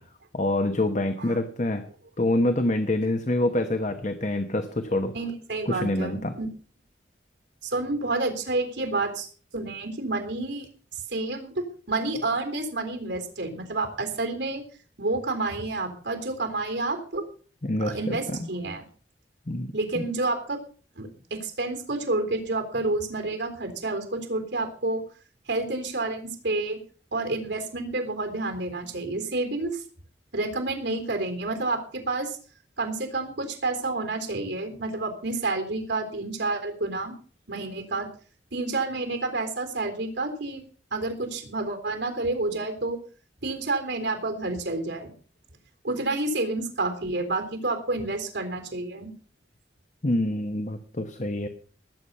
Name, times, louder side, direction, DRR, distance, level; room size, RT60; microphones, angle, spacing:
voice 1, 0.3-1.9 2.2-5.1 5.7-6.3 17.6-18.5 19.5-20.1 50.0-51.5, left 1 dB, 40° left, 7 dB, 1.1 m, -26 dB
voice 2, 5.1-6.5 7.6-9.3 9.5-14.6 15.0-17.3 17.8-18.8 19.7-20.6 21.0-25.0 25.5-26.8 27.1-29.8 30.3-32.4 32.8-37.1 37.5-38.1 38.5-40.6 40.9-43.0 43.4-45.1 45.8-49.1, right 2 dB, 80° right, 6 dB, 3.8 m, -29 dB
20.0 x 8.1 x 5.6 m, 0.42 s
head